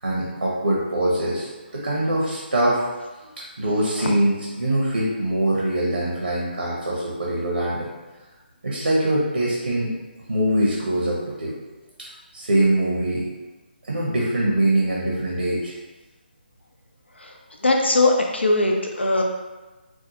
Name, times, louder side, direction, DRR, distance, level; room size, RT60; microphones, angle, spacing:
voice 1, 0.0-2.8 3.6-7.9 8.6-9.9 10.3-11.5 12.3-13.3 13.9-15.7, right 1 dB, 80° right, -4 dB, 0.9 m, -23 dB
voice 2, 17.6-19.2, left 2 dB, 90° left, 1 dB, 0.6 m, -20 dB
4.5 x 2.1 x 2.9 m, 1.2 s
figure-of-eight pair, 150°, 6 cm